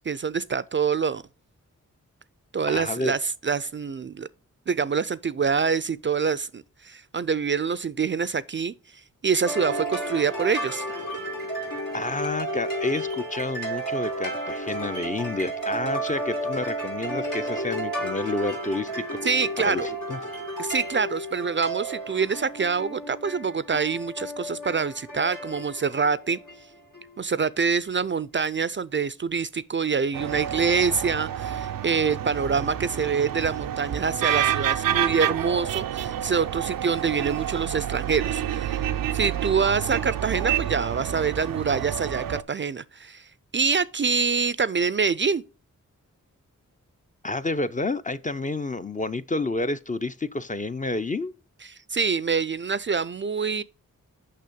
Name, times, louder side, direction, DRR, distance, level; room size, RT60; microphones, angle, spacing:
voice 1, 0.1-1.2 2.5-4.3 4.7-8.7 9.2-10.8 19.2-19.9 20.6-26.4 27.2-38.9 39.1-43.3 43.5-45.4 51.6-53.6, right 5 dB, 35° right, 0.4 m, -26 dB
voice 2, 2.7-3.1 11.9-19.0 19.6-20.2 47.2-51.3, left 2 dB, 25° left, 0.5 m, -29 dB
sound 1, 9.4-27.3, right 1 dB, 75° left, 2.6 m, -32 dB
sound 2, 30.1-42.4, right 10 dB, 90° right, 0.5 m, -28 dB
6.6 x 5.6 x 5.1 m
cardioid pair, 40°, 33 cm